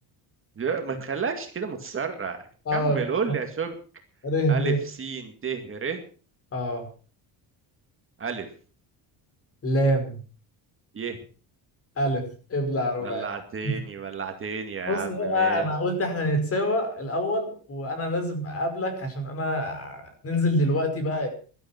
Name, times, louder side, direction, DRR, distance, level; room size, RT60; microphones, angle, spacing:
voice 1, 0.6-2.4 2.7-3.8 4.5-6.0 8.2-8.5 10.9-11.2 13.0-15.7, right 5 dB, 30° right, 5 dB, 2.3 m, -31 dB
voice 2, 2.7-3.1 4.2-4.8 6.5-6.9 9.6-10.2 12.0-13.3 13.6-13.7 14.9-21.3, equal, 35° left, 7 dB, 5.3 m, -26 dB
16.5 x 12.5 x 6.0 m, 0.39 s
cardioid pair, 145°, 42 cm